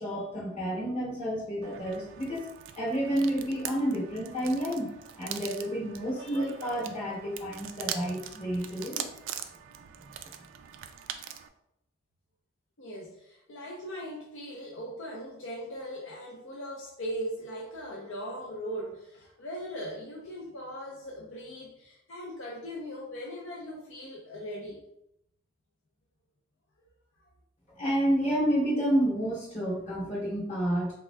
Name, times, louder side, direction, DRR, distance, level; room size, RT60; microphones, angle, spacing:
voice 1, 0.0-2.5 2.7-9.1 27.7-31.0, equal, 35° left, -8 dB, 1.0 m, -30 dB
sound 1, 1.6-11.5, right 9 dB, 90° right, 0.3 m, -42 dB
voice 2, 12.8-24.8, equal, 85° left, -3 dB, 0.6 m, -39 dB
3.7 x 3.4 x 2.2 m, 0.81 s
head